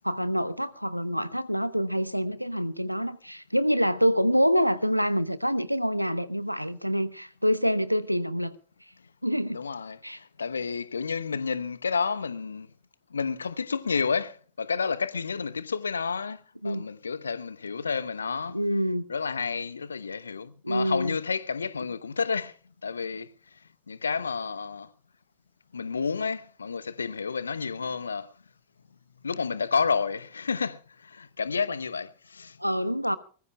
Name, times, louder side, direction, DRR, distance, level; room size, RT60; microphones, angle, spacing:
voice 1, 0.0-8.6 9.2-9.6 10.0-10.2 16.6-16.9 18.5-19.0 20.6-21.2 32.6-33.2, equal, 90° right, 0.9 m, -26 dB
voice 2, 9.5-12.7 13.1-18.6 19.1-22.5 22.8-23.3 23.9-24.9 25.7-28.3 29.2-32.6, left 5 dB, 75° left, 0.9 m, -30 dB
23.0 x 20.5 x 2.2 m
figure-of-eight pair, 90°, 0 cm